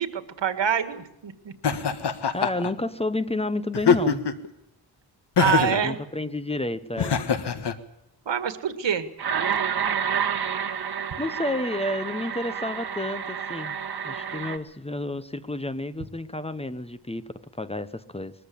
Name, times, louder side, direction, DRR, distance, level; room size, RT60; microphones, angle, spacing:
voice 1, 0.0-1.5 5.4-6.0 8.3-9.1, right 8 dB, 90° right, 11 dB, 1.9 m, -26 dB
Laughter, 1.6-2.7 3.7-4.5 5.4-5.9 7.0-7.7, left 6 dB, 70° left, 1.6 m, -23 dB
voice 2, 2.3-4.3 5.8-7.2 11.2-13.8 14.0-18.3, left 1 dB, 15° left, 13 dB, 0.9 m, -30 dB
sound 1, 9.2-14.6, right 7 dB, 60° right, 1.7 m, -29 dB
21.5 x 14.0 x 8.5 m, 0.86 s
wide cardioid pair, 120°, 43 cm